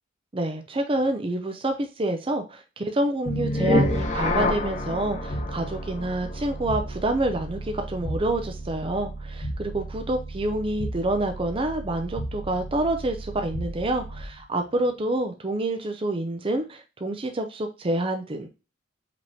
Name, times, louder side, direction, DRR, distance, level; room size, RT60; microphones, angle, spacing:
voice 1, 0.3-18.6, right 1 dB, 25° right, 5 dB, 0.5 m, -27 dB
sound 1, 3.2-14.4, left 1 dB, 35° left, 0.7 m, -30 dB
5.0 x 3.5 x 2.7 m, 0.30 s
head